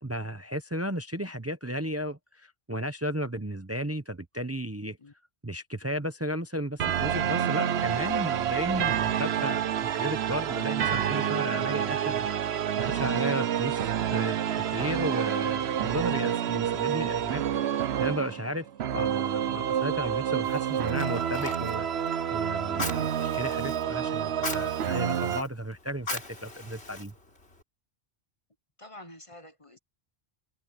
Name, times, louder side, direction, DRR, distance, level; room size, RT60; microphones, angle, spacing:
voice 1, 0.0-5.0 5.4-12.3 12.8-17.4 18.0-18.7 18.9-21.9 22.3-27.1, equal, 15° right, 0.8 m, -34 dB
sound 1, 6.8-25.4, right 9 dB, 75° right, 1.0 m, -28 dB
Fire, 20.4-27.6, left 2 dB, 80° left, 3.9 m, -40 dB
voice 2, 22.7-23.1 28.8-29.8, left 2 dB, 30° left, 1.0 m, -48 dB
omnidirectional pair, 1.1 m